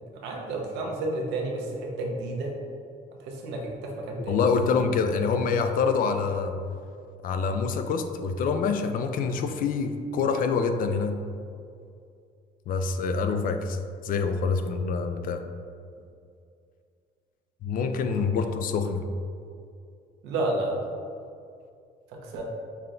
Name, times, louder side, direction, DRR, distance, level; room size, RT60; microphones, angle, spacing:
voice 1, 0.1-2.5 3.2-4.5 18.1-18.5 20.2-20.8 22.1-22.4, right 2 dB, 90° right, 0 dB, 0.8 m, -31 dB
voice 2, 4.3-6.5 7.2-11.2 12.7-13.8 14.0-15.4 17.6-19.0, left 5 dB, 55° left, 7 dB, 0.4 m, -26 dB
5.6 x 2.2 x 3.7 m, 2.4 s
cardioid pair, 110°, 17 cm